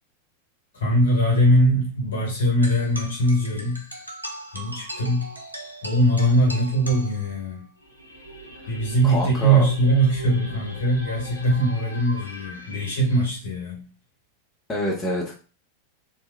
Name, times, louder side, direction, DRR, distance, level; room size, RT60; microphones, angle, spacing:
voice 1, 0.7-3.8 4.5-5.3 5.8-7.6 8.7-13.8, right 1 dB, 65° left, -1 dB, 1.1 m, -21 dB
sound 1, 2.6-7.6, right 1 dB, 85° right, 0.4 m, -38 dB
sound 2, 7.8-13.3, equal, 85° left, 0.5 m, -41 dB
voice 2, 9.0-9.7 14.7-15.3, equal, 15° left, -2 dB, 0.6 m, -26 dB
2.9 x 2.1 x 2.2 m, 0.34 s
figure-of-eight pair, 90°, 0 cm